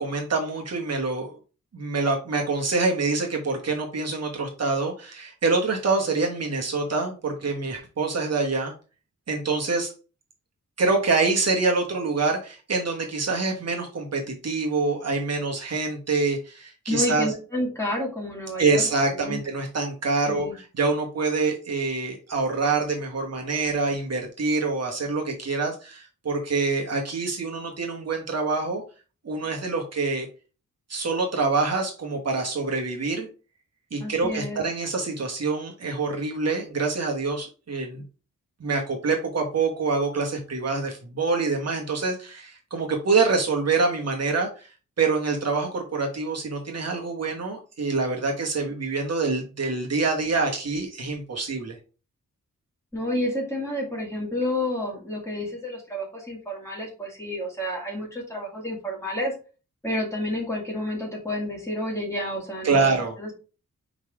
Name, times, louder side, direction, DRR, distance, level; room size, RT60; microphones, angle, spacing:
voice 1, 0.0-1.4 1.7-8.7 9.3-9.9 10.8-17.3 18.6-28.8 29.2-30.3 30.9-33.3 33.9-38.0 38.6-44.7 45.0-51.8 62.6-63.1, right 3 dB, 50° right, 0 dB, 1.3 m, -26 dB
voice 2, 16.9-19.4 20.3-20.6 34.0-34.6 52.9-59.3 59.8-63.3, left 1 dB, 10° left, -2 dB, 2.1 m, -30 dB
5.0 x 4.0 x 4.8 m, 0.34 s
wide cardioid pair, 175°, 32 cm